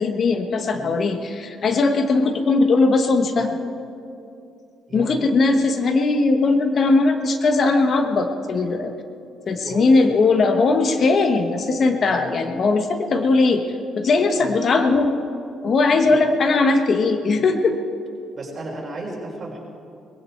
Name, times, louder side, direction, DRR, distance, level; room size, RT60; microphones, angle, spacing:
voice 1, 0.0-3.5 4.9-8.9 9.5-13.6 14.0-15.1 15.6-17.8, left 3 dB, 50° left, 7 dB, 1.1 m, -19 dB
voice 2, 4.9-5.2 9.6-10.1 12.1-12.3 14.4-14.5 16.0-16.2 18.3-19.6, right 2 dB, 40° right, -2 dB, 4.6 m, -34 dB
20.0 x 15.5 x 4.5 m, 2.6 s
cardioid pair, 90°, 0 cm